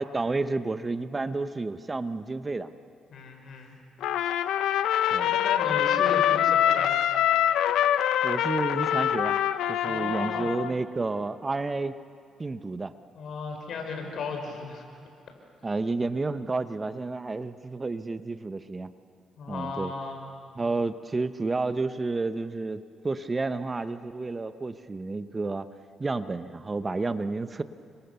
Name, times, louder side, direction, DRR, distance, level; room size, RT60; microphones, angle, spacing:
voice 1, 0.0-2.7 5.1-5.4 8.2-9.4 9.7-12.0 12.4-12.9 15.6-18.9 19.5-19.9 20.5-25.7 26.0-27.6, right 3 dB, 25° right, 11 dB, 0.9 m, -30 dB
voice 2, 3.1-3.8 5.2-6.9 9.8-10.5 13.2-14.8 19.4-20.3, left 4 dB, 65° left, 4 dB, 5.3 m, -35 dB
Trumpet, 4.0-10.7, left 10 dB, 85° left, 0.8 m, -24 dB
30.0 x 25.0 x 6.9 m, 2.4 s
cardioid pair, 90°, 0 cm